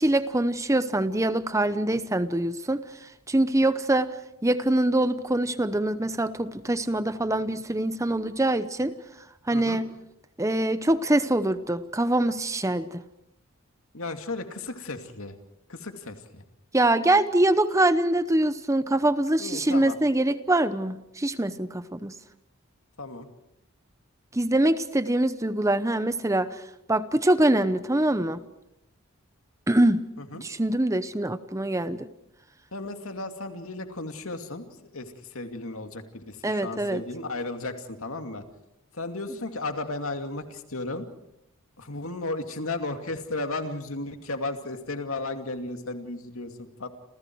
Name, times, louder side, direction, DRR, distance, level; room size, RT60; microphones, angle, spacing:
voice 1, 0.0-2.8 3.3-4.1 4.4-8.9 9.5-9.9 10.4-13.0 16.7-22.1 24.3-26.6 26.9-28.4 29.7-30.0 30.4-32.1 36.4-37.0, right 1 dB, 15° right, 12 dB, 0.8 m, -24 dB
voice 2, 13.9-15.4 15.7-16.4 19.4-20.0 23.0-23.3 30.2-30.4 32.7-34.6 34.9-38.4 38.9-41.1 41.8-46.9, left 2 dB, 70° left, 6 dB, 2.5 m, -34 dB
29.0 x 28.5 x 4.7 m, 0.82 s
head